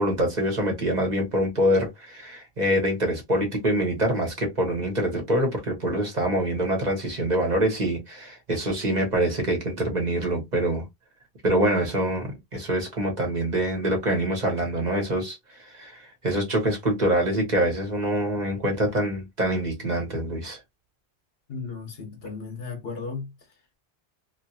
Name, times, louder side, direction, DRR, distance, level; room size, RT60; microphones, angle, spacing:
voice 1, 0.0-10.9 11.4-15.4 15.6-20.6, right 1 dB, 45° right, 1.2 m, -25 dB
voice 2, 21.5-23.3, left 4 dB, 70° left, 1.2 m, -35 dB
2.8 x 2.7 x 2.6 m
omnidirectional pair, 1.1 m